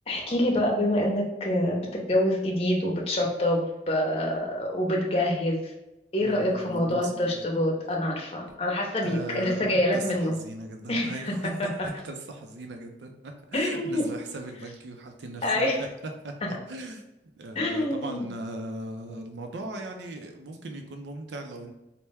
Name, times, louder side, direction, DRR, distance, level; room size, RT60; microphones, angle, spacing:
voice 1, 0.1-5.7 6.1-10.3 10.9-11.7 13.5-14.0 15.4-15.8 17.5-18.3, left 1 dB, 35° left, -1 dB, 0.7 m, -26 dB
voice 2, 6.2-7.5 9.0-15.7 16.2-17.0 17.4-21.7, right 2 dB, 75° right, 4 dB, 0.5 m, -38 dB
4.3 x 2.1 x 3.4 m, 0.96 s
head